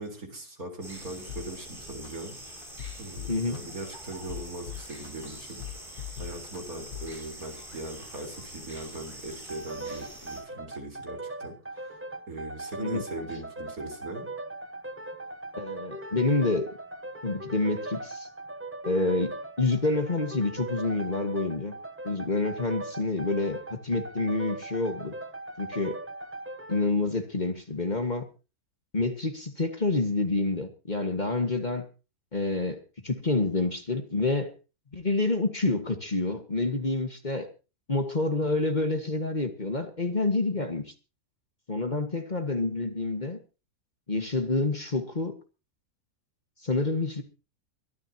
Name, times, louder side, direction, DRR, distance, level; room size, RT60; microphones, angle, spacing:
voice 1, 0.0-2.7 3.0-5.9 6.2-12.0 12.3-14.3, right 2 dB, 70° right, 3 dB, 4.5 m, -40 dB
sound 1, 0.8-10.4, right 1 dB, 35° right, 6.1 m, -45 dB
sound 2, 1.3-1.5 2.0-2.1 2.6-3.6 4.1-5.3 5.6-6.6 6.9-7.1, left 12 dB, 65° left, 1.3 m, -39 dB
voice 2, 3.3-3.6 12.8-13.0 15.6-16.7 17.2-18.3 18.8-21.7 22.0-25.1 25.6-26.0 26.7-28.2 28.9-31.9 32.3-34.5 34.9-37.5 37.9-40.9 41.7-43.4 44.1-45.4 46.6-47.2, left 2 dB, 30° left, 6 dB, 1.7 m, -28 dB
sound 3, 9.5-26.9, right 2 dB, 10° right, 0.6 m, -39 dB
23.5 x 12.5 x 2.9 m, 0.32 s
omnidirectional pair, 1.6 m